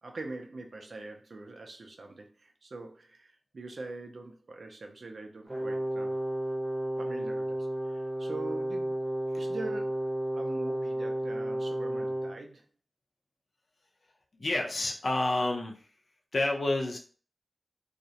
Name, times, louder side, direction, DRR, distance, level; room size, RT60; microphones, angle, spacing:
voice 1, 0.0-6.2 7.0-9.0 9.3-12.7, right 2 dB, 85° right, 0.4 m, -43 dB
Brass instrument, 5.5-12.4, right 1 dB, 30° right, 0.7 m, -32 dB
voice 2, 14.3-15.8 16.3-17.0, left 2 dB, 75° left, 0.5 m, -29 dB
2.4 x 2.0 x 2.7 m
wide cardioid pair, 65°, 0 cm